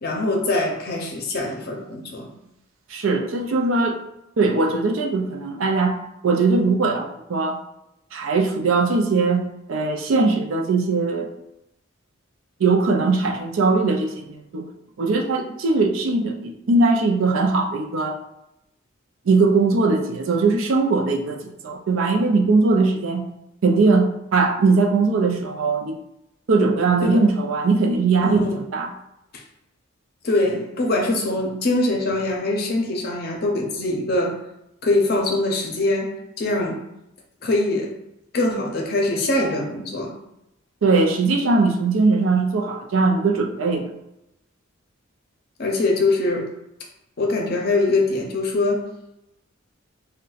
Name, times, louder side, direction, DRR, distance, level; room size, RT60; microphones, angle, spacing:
voice 1, 0.0-2.3 27.0-27.2 28.2-28.6 30.2-34.4 34.8-36.8 37.4-37.9 38.3-40.2 45.6-46.5 47.2-48.8, left 2 dB, 50° left, 0 dB, 0.6 m, -23 dB
voice 2, 2.9-4.0 4.4-6.0 6.2-7.6 8.1-11.3 12.6-14.7 15.0-18.2 19.3-23.3 23.6-26.0 26.5-28.4 28.7-28.9 40.8-43.9, right 3 dB, 75° right, 2 dB, 0.4 m, -20 dB
2.5 x 2.2 x 3.9 m, 0.85 s
head